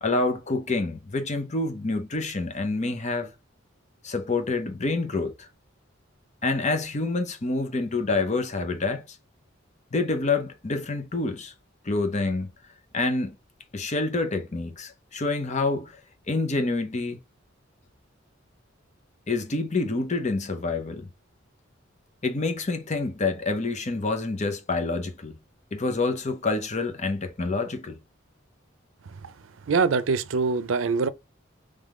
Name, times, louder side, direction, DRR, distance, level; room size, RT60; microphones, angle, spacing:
voice 1, 0.0-3.3 4.0-5.5 6.4-9.2 9.9-11.5 11.8-12.5 12.9-13.4 13.7-16.0 16.3-17.2 19.3-21.1 22.2-25.4 25.7-28.0, left 3 dB, 35° left, 0.8 m, -27 dB
voice 2, 29.7-31.1, right 4 dB, 80° right, 0.5 m, -24 dB
3.6 x 3.4 x 3.6 m
head